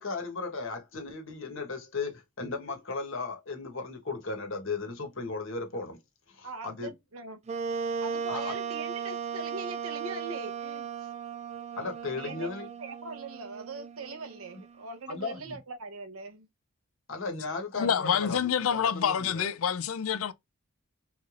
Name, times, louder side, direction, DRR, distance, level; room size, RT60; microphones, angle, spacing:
voice 1, 0.0-6.0 6.3-6.9 8.3-8.5 11.8-12.7 15.1-15.6 17.1-19.5, left 4 dB, 65° left, 1.2 m, -36 dB
voice 2, 6.4-7.4 7.8-11.1 12.1-12.5 12.8-16.5, right 3 dB, 90° right, 0.9 m, -41 dB
Wind instrument woodwind instrument, 7.5-14.9, right 6 dB, 30° right, 0.3 m, -36 dB
voice 3, 17.7-20.3, left 8 dB, 80° left, 0.5 m, -27 dB
3.9 x 3.3 x 2.5 m
head